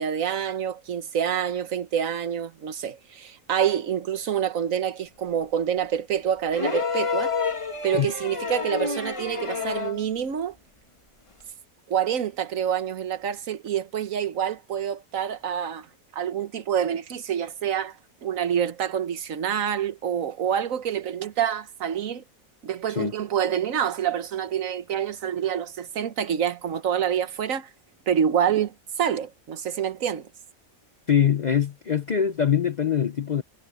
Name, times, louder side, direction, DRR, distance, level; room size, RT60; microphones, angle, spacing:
voice 1, 0.0-7.3 7.8-10.6 11.9-15.9 16.1-22.2 22.6-27.7 28.1-30.3, right 9 dB, 70° right, 1.5 m, -27 dB
sound 1, 6.5-10.1 11.4-11.5, left 5 dB, 20° left, 1.8 m, -28 dB
voice 2, 31.1-33.4, left 8 dB, 60° left, 0.4 m, -23 dB
omnidirectional pair, 1.5 m